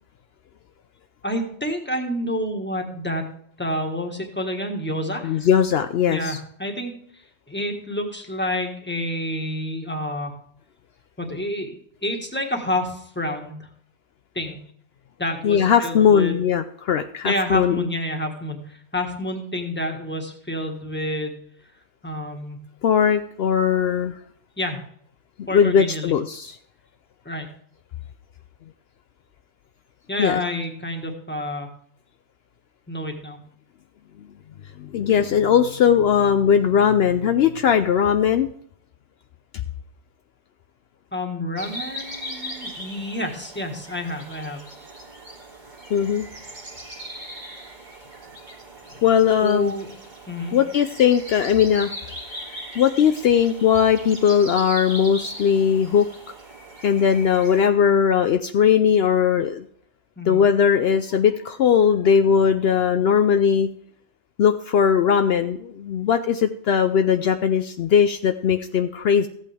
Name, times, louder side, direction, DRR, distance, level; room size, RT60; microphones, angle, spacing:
voice 1, 1.2-3.2 3.6-5.5 6.1-7.2 7.5-10.3 11.2-13.7 14.3-14.6 15.2-16.3 17.2-21.4 22.0-22.6 24.6-24.8 25.5-26.2 27.2-27.5 30.1-31.7 32.9-33.4 41.1-44.6 49.4-49.9 50.3-50.6 60.2-60.4, left 1 dB, 10° left, 3 dB, 1.5 m, -29 dB
voice 2, 5.2-6.4 15.4-17.9 22.8-24.2 25.5-26.6 30.2-30.4 34.8-38.5 45.9-46.3 49.0-49.7 50.5-51.9 52.8-56.1 56.8-59.6 60.3-63.7 64.4-69.3, left 8 dB, 70° left, 8 dB, 0.8 m, -19 dB
sound 1, 41.6-57.7, equal, 45° right, 1.9 m, -39 dB
15.0 x 8.3 x 3.5 m, 0.66 s
omnidirectional pair, 1.1 m